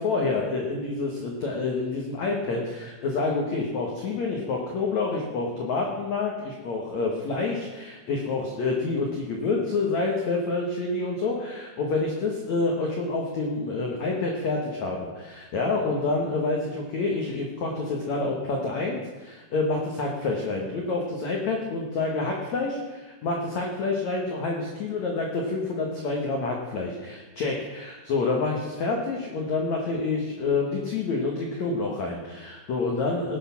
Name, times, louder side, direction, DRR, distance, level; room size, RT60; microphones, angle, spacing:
voice 1, 0.0-33.4, left 3 dB, 90° left, 0 dB, 1.5 m, -28 dB
18.5 x 8.4 x 5.8 m, 1.2 s
omnidirectional pair, 5.7 m